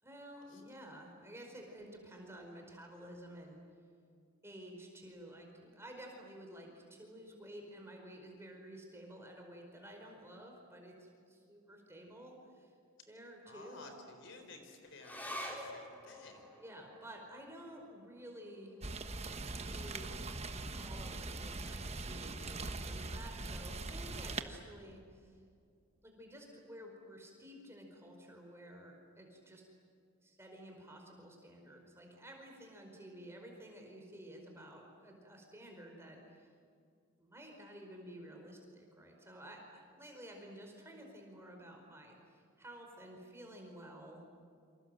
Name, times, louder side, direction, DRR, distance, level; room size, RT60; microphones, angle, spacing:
voice 1, 0.0-3.6 4.4-12.7 13.1-13.9 16.5-18.8 19.6-20.2 20.8-25.4 26.0-29.6 30.2-36.5 37.2-44.2, right 1 dB, 10° right, 1 dB, 4.8 m, -52 dB
voice 2, 13.5-16.4, left 2 dB, 60° left, 5 dB, 4.3 m, -54 dB
sound 1, 15.0-21.8 22.1-22.2 22.5-23.2 23.8-23.9, equal, 10° left, 3.9 m, -50 dB
Rain, 18.8-24.4, right 3 dB, 30° right, 1.2 m, -41 dB
28.5 x 26.5 x 7.8 m, 2.3 s
head